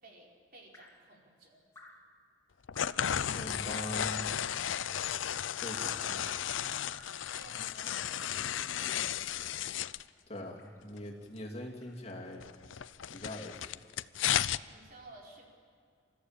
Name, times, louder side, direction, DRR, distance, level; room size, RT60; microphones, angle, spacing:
voice 1, 0.0-1.6 7.3-9.5 14.7-15.5, right 2 dB, 50° right, -2 dB, 4.9 m, -55 dB
Drip, 0.7-1.1 1.7-2.1 2.7-3.1 3.7-4.0 4.7-5.1 5.7-6.1 6.9-7.3 8.1-8.4 9.3-9.6 10.6-10.9 11.8-12.0, left 2 dB, 15° left, 2.9 m, -55 dB
sound 1, 2.7-10.0 12.4-14.6, left 10 dB, 90° left, 0.5 m, -34 dB
voice 2, 3.2-4.4 5.6-6.3 10.3-12.4 13.1-13.7, left 1 dB, 35° left, -1 dB, 2.7 m, -42 dB
28.0 x 15.0 x 8.9 m, 2.3 s
head